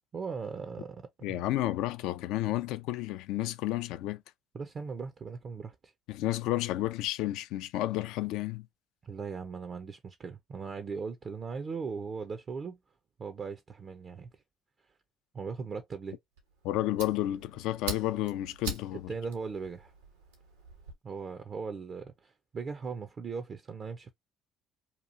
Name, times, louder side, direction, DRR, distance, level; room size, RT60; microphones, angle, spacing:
voice 1, 0.1-1.4 4.5-5.9 9.0-12.8 13.2-14.3 15.3-16.2 19.1-19.9 21.0-24.1, right 5 dB, 40° right, 0.5 m, -39 dB
voice 2, 1.2-4.2 6.1-8.7 16.6-19.1, left 15 dB, 70° left, 0.3 m, -31 dB
Fire, 16.4-20.9, right 3 dB, 90° right, 1.0 m, -43 dB
2.9 x 2.3 x 2.5 m
hypercardioid pair, 65°, 0 cm